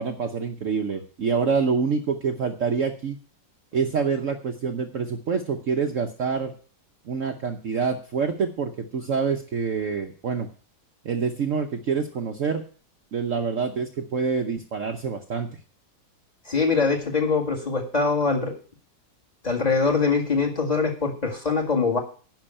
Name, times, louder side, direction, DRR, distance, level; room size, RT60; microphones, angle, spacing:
voice 1, 0.0-3.2 3.7-6.5 7.0-10.5 11.0-12.6 13.1-15.5, right 5 dB, 55° right, 4 dB, 1.0 m, -26 dB
voice 2, 16.5-18.5 19.4-22.0, left 4 dB, 25° left, 4 dB, 1.9 m, -23 dB
10.5 x 5.6 x 8.7 m, 0.41 s
omnidirectional pair, 1.9 m